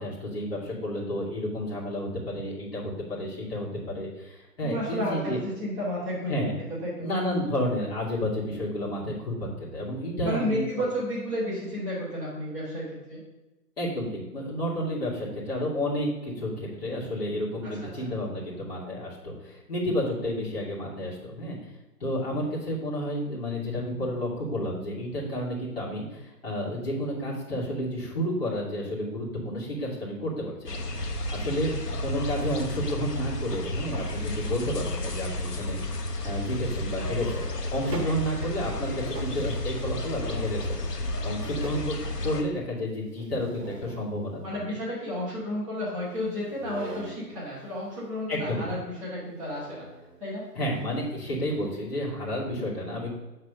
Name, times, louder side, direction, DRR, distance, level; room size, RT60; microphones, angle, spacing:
voice 1, 0.0-5.4 6.3-6.5 7.0-10.7 13.8-21.6 22.0-31.8 32.0-35.8 36.2-40.8 41.2-44.6 48.3-48.8 50.5-53.1, equal, 40° left, -7 dB, 2.3 m, -31 dB
voice 2, 4.6-6.3 6.8-7.1 10.2-13.2 17.6-17.9 38.0-38.2 44.4-49.9 50.2-50.5, left 1 dB, 20° right, -11 dB, 2.3 m, -32 dB
sound 1, 30.7-42.4, left 1 dB, 75° left, 1.2 m, -32 dB
sound 2, 37.6-38.6 39.1-39.9 40.3-41.0 41.4-42.1 43.2-44.1 46.4-47.3 49.5-50.2 50.7-50.9 51.5-51.8, right 3 dB, 75° right, 1.2 m, -42 dB
6.5 x 4.0 x 6.5 m, 1.1 s
figure-of-eight pair, 170°, 48 cm